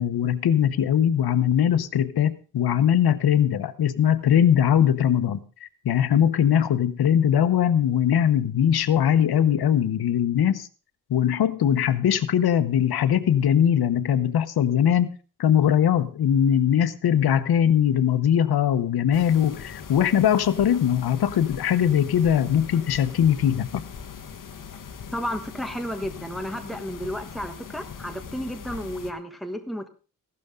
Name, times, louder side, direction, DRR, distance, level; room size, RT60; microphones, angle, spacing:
voice 1, 0.0-10.7 11.1-23.8, left 9 dB, 90° left, 12 dB, 1.0 m, -21 dB
sound 1, 19.1-29.1, left 6 dB, 60° left, 1.4 m, -41 dB
voice 2, 25.1-29.9, equal, ahead, 6 dB, 1.2 m, -32 dB
15.5 x 12.5 x 3.7 m, 0.37 s
wide cardioid pair, 150°, 36 cm